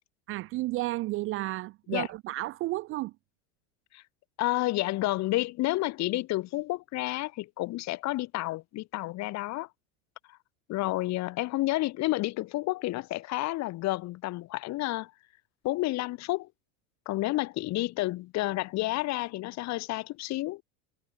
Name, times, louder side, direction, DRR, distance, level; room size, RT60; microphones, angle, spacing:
voice 1, 0.3-3.1, right 18 dB, 35° right, 0.5 m, -32 dB
voice 2, 4.4-9.7 10.7-15.1 15.6-16.5 17.1-20.6, left 18 dB, 40° left, 2.0 m, -30 dB
supercardioid pair, 135°, 40 cm